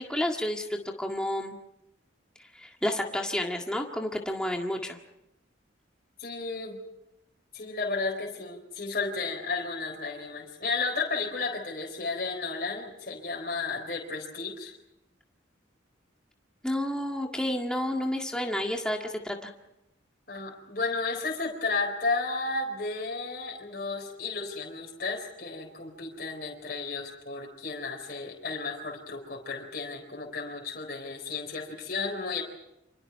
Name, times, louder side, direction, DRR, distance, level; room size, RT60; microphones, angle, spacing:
voice 1, 0.0-1.6 2.6-5.0 16.6-19.5, left 1 dB, 5° left, 1 dB, 1.9 m, -30 dB
voice 2, 6.2-6.8 7.5-14.7 20.3-32.4, left 3 dB, 50° left, -1 dB, 4.2 m, -33 dB
29.0 x 26.0 x 4.6 m, 0.88 s
head